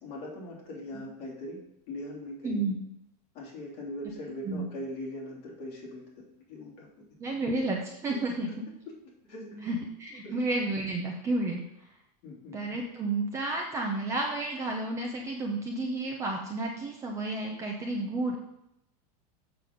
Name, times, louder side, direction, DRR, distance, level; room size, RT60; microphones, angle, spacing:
voice 1, 0.0-1.6 1.9-2.6 3.3-6.0 6.5-6.9 9.3-9.7 10.2-10.3 12.2-12.6, left 1 dB, 35° left, -3 dB, 3.0 m, -40 dB
voice 2, 2.4-2.8 4.4-4.7 7.2-8.5 9.6-11.7 12.5-18.3, right 2 dB, 15° right, 0 dB, 0.7 m, -31 dB
7.5 x 6.7 x 5.2 m, 0.81 s
supercardioid pair, 175°, 20 cm